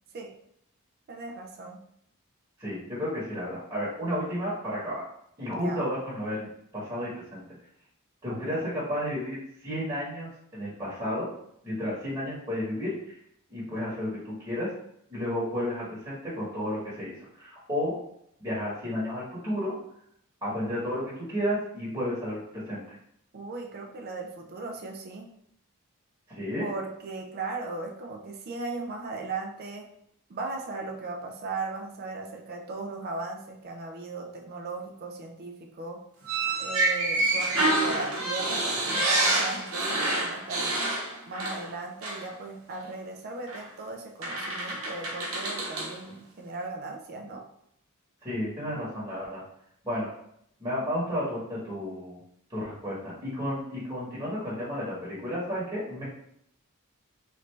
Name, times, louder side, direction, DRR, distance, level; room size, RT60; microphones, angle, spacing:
voice 1, 1.1-1.8 5.5-5.9 8.3-8.7 23.3-25.3 26.6-29.9 30.3-36.0 36.6-40.7 41.3-47.4, right 3 dB, 45° right, 2 dB, 0.4 m, -37 dB
voice 2, 2.6-5.0 5.4-6.5 6.7-7.4 8.2-11.3 11.6-13.2 13.5-14.7 15.1-18.0 18.4-19.8 20.4-23.0 26.3-26.7 48.2-49.4 49.8-50.1 50.6-52.2 52.5-56.0, equal, 20° right, -8 dB, 1.2 m, -32 dB
sound 1, 36.2-41.7 42.0-42.2 43.5-43.6 44.2-45.9, right 2 dB, 70° right, 0.9 m, -27 dB
3.2 x 2.6 x 3.1 m, 0.72 s
head